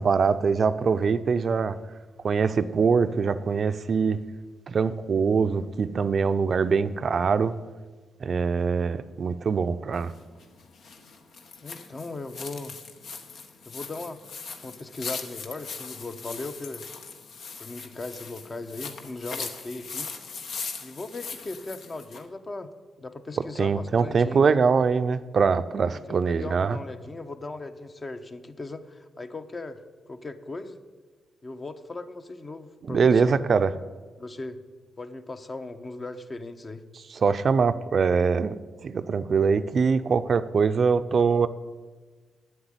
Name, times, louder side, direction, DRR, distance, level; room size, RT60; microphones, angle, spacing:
voice 1, 0.0-1.8 2.2-4.2 4.7-7.6 8.2-10.1 23.6-26.8 32.9-33.7 37.1-38.6 38.8-41.5, right 5 dB, 55° right, 11 dB, 0.5 m, -23 dB
sound 1, 9.9-22.3, left 5 dB, 70° left, 1.2 m, -40 dB
voice 2, 11.6-12.8 13.7-14.2 14.6-16.8 17.6-20.1 20.8-22.7 23.0-24.6 25.9-29.8 30.1-30.8 31.4-33.4 34.2-34.6 35.0-36.8, left 2 dB, 35° left, 8 dB, 0.9 m, -38 dB
8.6 x 7.9 x 9.0 m, 1.4 s
cardioid pair, 70°, 0 cm